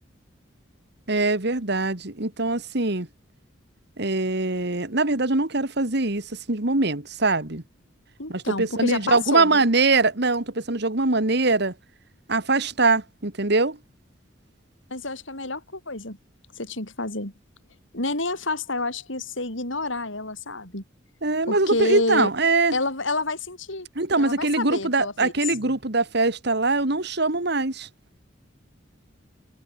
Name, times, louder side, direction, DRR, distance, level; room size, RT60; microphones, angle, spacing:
voice 1, 1.1-3.1 4.0-7.6 8.3-11.7 12.3-13.8 21.2-22.7 24.0-27.9, right 3 dB, 60° right, 2.2 m, -23 dB
voice 2, 8.2-9.7 14.9-16.2 16.6-17.3 17.9-20.8 21.5-22.3 22.7-23.9 24.2-25.3, left 2 dB, 75° left, 7.6 m, -29 dB
head